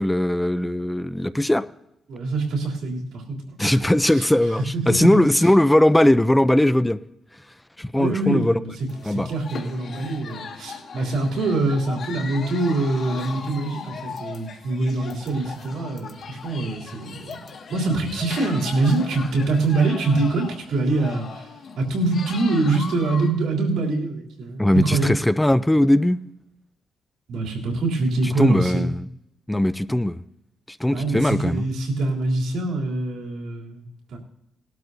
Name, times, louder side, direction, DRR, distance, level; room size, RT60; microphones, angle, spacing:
voice 1, 0.0-1.7 3.6-7.0 7.8-8.5 9.1-9.3 24.6-26.2 28.4-29.1 29.5-30.2 30.7-31.6, left 1 dB, 5° left, 0.4 m, -19 dB
voice 2, 2.1-3.8 4.1-4.3 4.7-5.3 7.9-8.7 9.0-25.1 27.3-28.9 30.9-34.2, right 2 dB, 90° right, 3.1 m, -24 dB
sound 1, 8.9-23.3, left 5 dB, 55° left, 1.8 m, -38 dB
19.5 x 12.0 x 2.7 m
cardioid pair, 125°, 0 cm